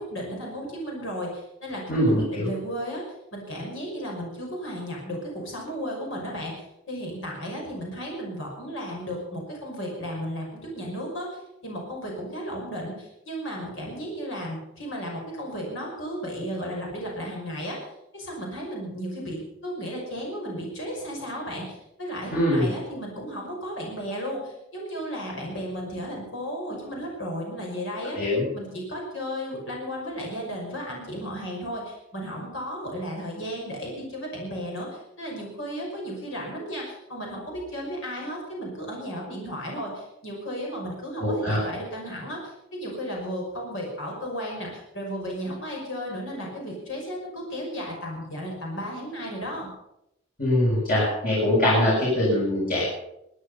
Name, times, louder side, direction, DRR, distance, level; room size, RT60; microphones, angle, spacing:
voice 1, 0.0-3.0 3.3-28.2 28.5-49.7, equal, 65° left, -1 dB, 5.8 m, -34 dB
voice 2, 1.9-2.5 22.3-22.7 28.1-28.4 41.2-41.6 50.4-52.9, left 1 dB, 45° left, -7 dB, 6.6 m, -22 dB
24.5 x 9.9 x 5.6 m, 0.84 s
head